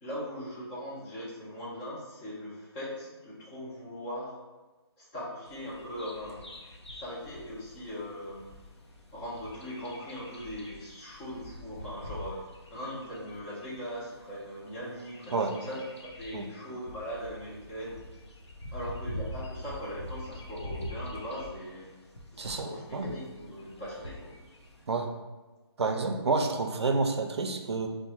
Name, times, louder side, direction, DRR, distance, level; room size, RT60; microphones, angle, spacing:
voice 1, 0.0-4.4 5.0-6.6 7.0-8.5 9.1-12.4 12.7-18.0 18.7-21.9 22.3-24.3, equal, 10° left, -7 dB, 0.4 m, -40 dB
Bird vocalization bird call bird song, 5.5-24.8, left 1 dB, 85° left, 0.6 m, -45 dB
voice 2, 22.4-23.1 24.9-25.1 25.8-27.9, right 3 dB, 75° right, 5 dB, 0.4 m, -29 dB
2.9 x 2.1 x 2.9 m, 1.2 s
figure-of-eight pair, 150°, 14 cm